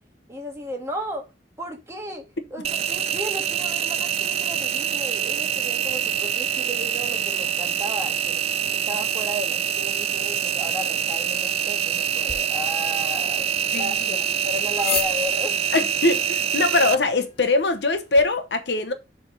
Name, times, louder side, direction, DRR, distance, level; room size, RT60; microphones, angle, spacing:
voice 1, 0.3-1.3 1.6-8.4 8.7-15.6, equal, 15° right, 1.6 m, -34 dB
Engine, 2.6-16.9, right 9 dB, 35° right, 0.3 m, -25 dB
sound 1, 12.2-18.3, left 4 dB, 35° left, 2.0 m, -37 dB
voice 2, 15.7-18.9, left 3 dB, 70° left, 0.9 m, -22 dB
7.1 x 3.4 x 5.3 m
head